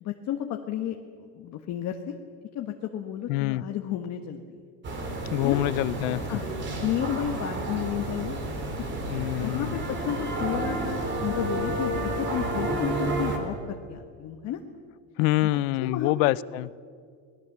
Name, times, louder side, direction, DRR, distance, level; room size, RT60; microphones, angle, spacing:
voice 1, 0.0-2.1 2.5-4.6 5.4-5.6 6.3-6.5 6.8-8.4 9.4-14.6 15.5-16.3, left 10 dB, 40° left, 1.4 m, -32 dB
voice 2, 3.3-3.6 5.3-6.2 9.1-9.8 15.2-16.7, left 17 dB, 80° left, 0.8 m, -26 dB
sound 1, 4.8-13.4, right 2 dB, 25° right, 3.6 m, -31 dB
27.0 x 19.5 x 7.4 m
cardioid pair, 165°, 40 cm